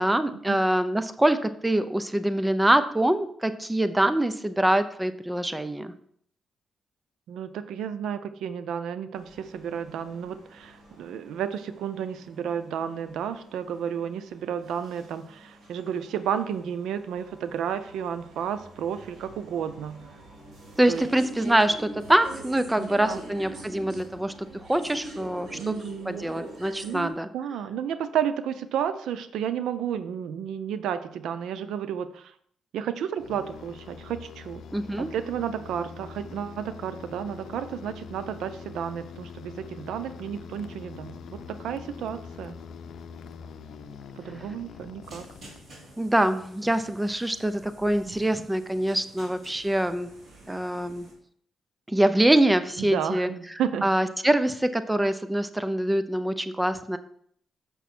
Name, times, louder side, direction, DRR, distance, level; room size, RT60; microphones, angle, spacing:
voice 1, 0.0-5.9 20.8-25.8 26.1-27.3 34.7-35.1 46.0-50.1 50.5-51.1 51.9-53.3 53.8-57.0, right 1 dB, 10° right, 11 dB, 0.6 m, -24 dB
voice 2, 7.3-20.0 20.9-21.0 22.8-23.2 25.5-26.3 26.8-32.3 32.7-34.6 35.0-42.5 44.2-45.2 48.1-48.2 52.8-54.0, right 8 dB, 85° right, 12 dB, 0.5 m, -32 dB
sound 1, 9.1-27.1, right 2 dB, 55° right, 3.2 m, -44 dB
sound 2, 33.2-46.0, left 6 dB, 75° left, 0.6 m, -44 dB
sound 3, 45.0-51.1, right 1 dB, 40° right, 2.6 m, -51 dB
7.0 x 6.1 x 4.3 m, 0.64 s
cardioid pair, 105°, 0 cm